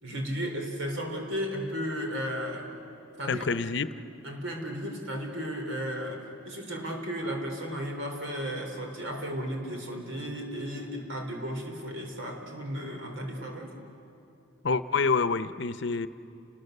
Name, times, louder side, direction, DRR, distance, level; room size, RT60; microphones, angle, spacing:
voice 1, 0.0-2.7 3.2-3.4 4.2-13.7, equal, 85° right, 4.0 m, -34 dB
voice 2, 3.3-4.0 14.6-16.1, left 4 dB, 65° left, 0.7 m, -27 dB
30.0 x 21.5 x 6.7 m
head